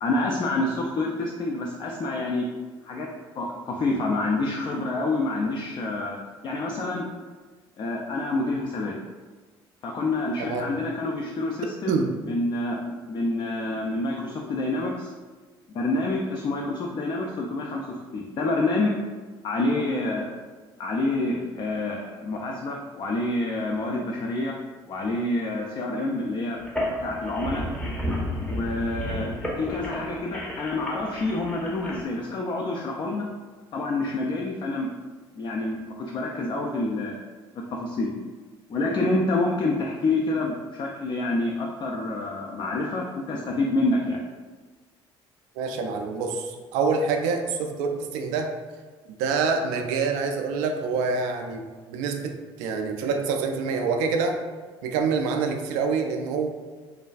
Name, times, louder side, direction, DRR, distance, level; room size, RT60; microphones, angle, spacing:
voice 1, 0.0-2.5 2.8-3.1 3.4-7.1 7.8-9.0 9.8-12.0 12.2-15.1 15.7-19.0 19.4-20.3 20.8-24.5 24.9-26.6 27.0-27.6 28.5-33.3 33.7-34.9 35.3-37.2 37.7-38.1 38.7-44.2, left 2 dB, 35° left, 0 dB, 0.3 m, -27 dB
sound 1, 26.6-32.0, left 1 dB, 5° left, 0.7 m, -32 dB
voice 2, 45.6-48.5 49.2-51.6 51.9-54.4 54.8-56.5, right 5 dB, 65° right, 4 dB, 0.4 m, -26 dB
3.3 x 2.2 x 2.3 m, 1.4 s
figure-of-eight pair, 55°, 14 cm